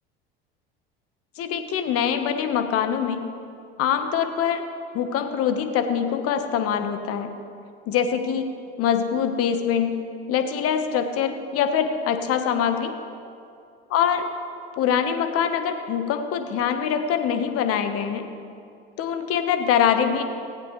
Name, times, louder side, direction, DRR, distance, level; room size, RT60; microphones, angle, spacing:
voice 1, 1.4-3.2 3.8-4.6 4.9-7.3 7.9-8.5 8.8-10.0 10.3-12.9 13.9-14.3 14.8-18.3 19.0-20.2, left 8 dB, 50° left, 7 dB, 1.4 m, -24 dB
17.5 x 16.0 x 3.3 m, 2.4 s
figure-of-eight pair, 70°, 31 cm